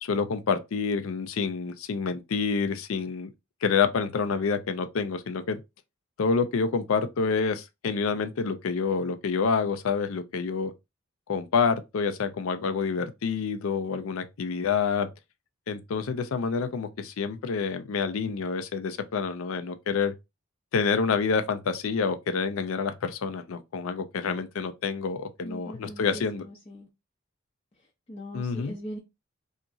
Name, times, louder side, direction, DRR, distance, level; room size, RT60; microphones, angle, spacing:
voice 1, 0.0-3.3 3.6-5.6 6.2-10.7 11.3-15.1 15.7-20.1 20.7-26.4 28.3-28.7, left 5 dB, 80° left, 0.4 m, -28 dB
voice 2, 25.4-26.9 28.1-29.0, equal, 30° left, 0.5 m, -40 dB
2.8 x 2.4 x 2.4 m
head